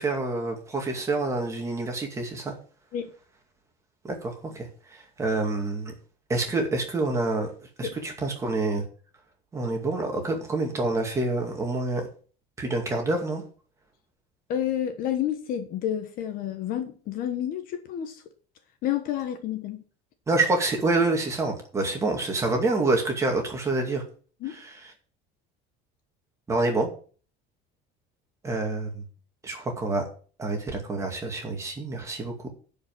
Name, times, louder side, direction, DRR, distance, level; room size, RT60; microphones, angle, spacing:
voice 1, 0.0-2.5 4.0-5.9 6.3-7.5 7.8-8.8 9.5-12.1 12.6-13.4 20.3-24.0 24.5-24.9 26.5-26.9 28.4-29.0 29.4-30.1 30.4-32.5, right 2 dB, 15° right, 2.2 m, -27 dB
voice 2, 14.5-18.2 18.8-19.8 24.4-24.6, left 10 dB, 45° left, 1.3 m, -30 dB
11.0 x 5.3 x 7.6 m
cardioid pair, 180°, 20 cm